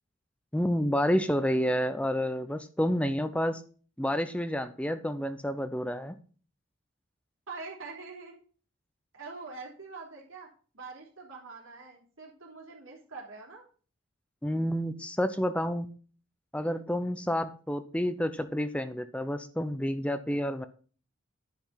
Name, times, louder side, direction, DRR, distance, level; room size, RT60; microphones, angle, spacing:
voice 1, 0.5-3.6 4.0-6.2 14.4-15.9 16.5-20.7, equal, 5° left, 10 dB, 0.6 m, -29 dB
voice 2, 7.5-8.3 9.1-10.5 10.7-13.6, right 4 dB, 75° right, -3 dB, 3.3 m, -44 dB
10.5 x 5.3 x 5.8 m, 0.40 s
head